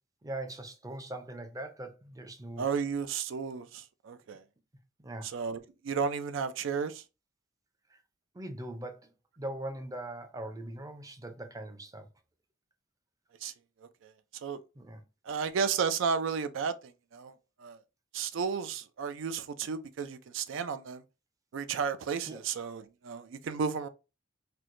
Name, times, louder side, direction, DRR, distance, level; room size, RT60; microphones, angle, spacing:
voice 1, 0.2-2.7 5.0-5.3 7.9-8.0 8.3-9.1 9.4-12.1 14.8-15.0 22.3-22.4, right 1 dB, 15° right, 0.5 m, -41 dB
voice 2, 2.6-4.4 5.2-7.0 13.4-13.5 14.0-14.1 14.4-14.6 15.3-17.3 17.6-17.8 18.1-21.0 21.5-23.9, right 6 dB, 70° right, 0.4 m, -33 dB
4.4 x 2.1 x 2.5 m
head